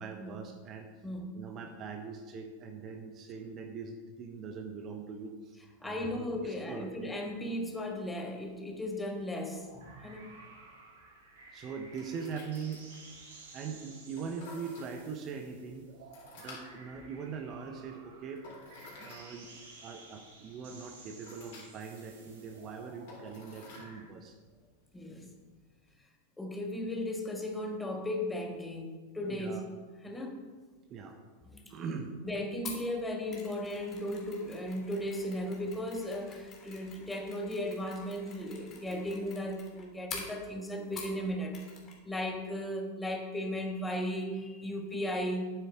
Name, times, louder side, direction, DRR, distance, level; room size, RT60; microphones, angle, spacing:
voice 1, 0.0-0.9 1.3-5.5 5.8-6.9 11.5-12.8 13.5-15.9 16.3-18.4 19.0-19.5 19.8-24.4 29.3-29.6 30.9-31.2 31.7-32.2, right 5 dB, 30° right, 5 dB, 0.9 m, -41 dB
voice 2, 1.0-1.3 5.8-10.3 24.9-25.3 26.4-29.6 30.0-30.4 31.4-31.6 32.2-41.6 42.0-45.4, left 1 dB, 10° left, 2 dB, 1.5 m, -36 dB
sound 1, 8.4-25.9, left 3 dB, 50° left, 3.4 m, -56 dB
sound 2, 9.4-24.1, right 3 dB, 55° right, 2.7 m, -54 dB
Mechanisms, 32.6-41.2 41.5-42.0 42.2-42.4, left 5 dB, 30° left, 2.5 m, -48 dB
11.5 x 9.3 x 3.5 m, 1.4 s
figure-of-eight pair, 90°, 0 cm